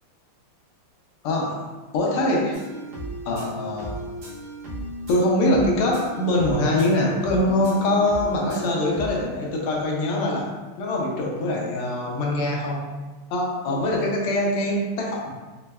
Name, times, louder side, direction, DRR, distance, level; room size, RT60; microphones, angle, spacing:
voice 1, 1.2-1.7 1.9-2.6 3.3-4.0 5.1-10.5 10.8-12.9 13.3-15.3, left 1 dB, 80° left, -1 dB, 1.5 m, -23 dB
sound 1, 2.5-9.2, equal, 60° right, 1.2 m, -35 dB
4.8 x 2.1 x 2.2 m, 1.2 s
omnidirectional pair, 2.4 m